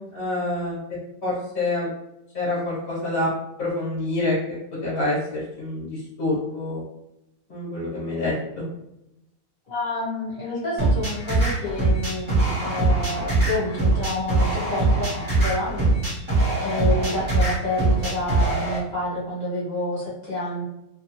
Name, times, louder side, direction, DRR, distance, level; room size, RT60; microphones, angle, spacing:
voice 1, 0.1-0.8 1.2-1.9 2.3-3.3 3.6-4.3 4.8-5.2 5.6-6.8 7.5-8.6, left 2 dB, 40° left, -7 dB, 1.2 m, -26 dB
voice 2, 9.7-15.1 15.4-15.7 16.6-20.6, left 2 dB, 55° left, -7 dB, 1.4 m, -29 dB
sound 1, 10.8-18.8, right 2 dB, 25° right, 0.8 m, -22 dB
2.9 x 2.2 x 2.9 m, 0.86 s
omnidirectional pair, 1.9 m